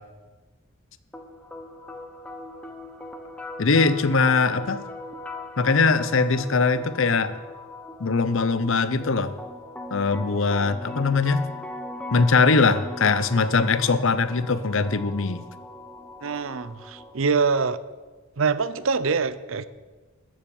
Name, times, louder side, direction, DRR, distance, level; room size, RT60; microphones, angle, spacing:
sound 1, 1.1-17.1, left 2 dB, 5° left, 1.0 m, -39 dB
voice 1, 3.6-4.8 5.6-7.4 8.0-9.3 9.9-11.5 12.1-15.4, left 4 dB, 65° left, 0.7 m, -21 dB
voice 2, 16.2-17.8 18.4-19.6, right 5 dB, 65° right, 0.6 m, -24 dB
14.0 x 7.5 x 7.1 m
head